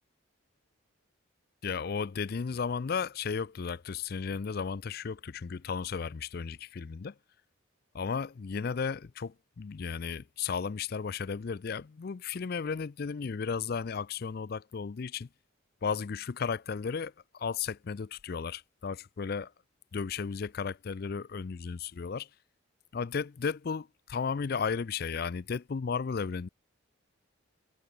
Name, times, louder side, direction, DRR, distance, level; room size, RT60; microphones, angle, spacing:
voice 1, 1.6-7.1 7.9-15.3 15.8-19.5 19.9-22.3 22.9-26.5, left 5 dB, 45° left, 0.4 m, -34 dB
head